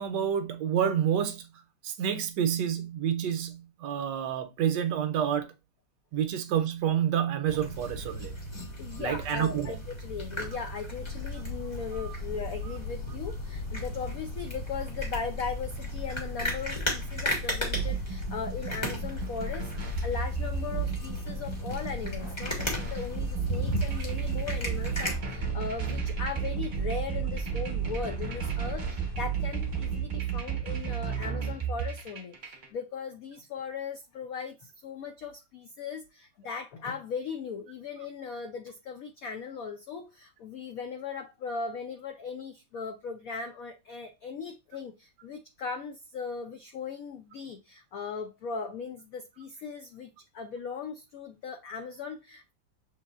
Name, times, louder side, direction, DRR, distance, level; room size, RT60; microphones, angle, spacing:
voice 1, 0.0-1.5 1.8-5.5 6.1-8.3 9.0-9.8 12.0-12.1 12.7-12.8, right 9 dB, 75° right, 1.1 m, -29 dB
sound 1, 7.5-25.1, equal, 20° left, 1.0 m, -36 dB
voice 2, 8.8-52.5, left 5 dB, 80° left, 0.7 m, -38 dB
sound 2, 10.9-30.1, left 4 dB, 60° left, 2.5 m, -39 dB
sound 3, 17.7-32.7, right 9 dB, 40° right, 0.7 m, -33 dB
6.8 x 3.2 x 2.3 m
omnidirectional pair, 2.1 m